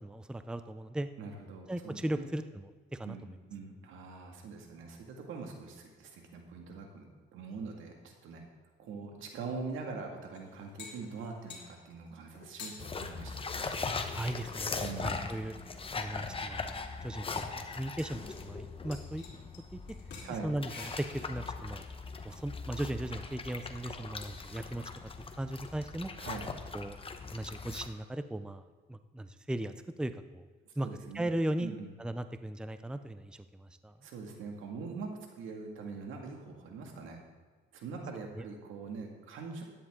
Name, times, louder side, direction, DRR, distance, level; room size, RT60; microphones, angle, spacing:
voice 1, 0.0-1.1 1.7-3.2 14.1-14.7 15.0-15.5 15.9-16.8 17.0-19.2 19.7-19.8 20.4-21.8 22.2-24.8 25.4-26.1 26.7-27.0 27.3-29.7 30.0-30.5 30.8-30.9 31.1-31.7 32.0-33.9 38.4-38.5, right 1 dB, 5° right, 10 dB, 0.5 m, -37 dB
voice 2, 1.2-2.3 3.0-8.5 8.8-13.4 14.8-15.2 20.2-20.5 26.2-26.5 30.7-31.3 31.6-32.0 34.0-37.3 37.7-39.6, right 4 dB, 85° right, 2 dB, 2.0 m, -43 dB
sound 1, 10.3-11.7 12.3-12.8 13.7-15.3 16.2-16.3 16.7-16.8 17.0-17.1 18.0-18.7 18.9-19.6 19.9-20.3 20.7-21.4, left 4 dB, 60° left, 3.0 m, -50 dB
sound 2, 12.8-27.9, left 4 dB, 25° left, 1.0 m, -40 dB
13.0 x 10.0 x 3.7 m, 1.4 s
cardioid pair, 90°, 20 cm